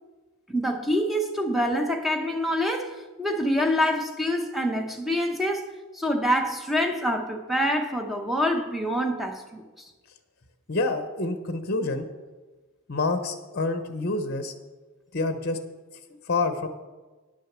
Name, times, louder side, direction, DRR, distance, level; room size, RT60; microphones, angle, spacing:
voice 1, 0.5-9.6, equal, ahead, 0.9 m, -26 dB
voice 2, 10.7-12.1 12.9-14.5 15.1-15.6 16.3-16.7, left 3 dB, 50° left, 0.8 m, -27 dB
10.0 x 6.4 x 7.3 m
head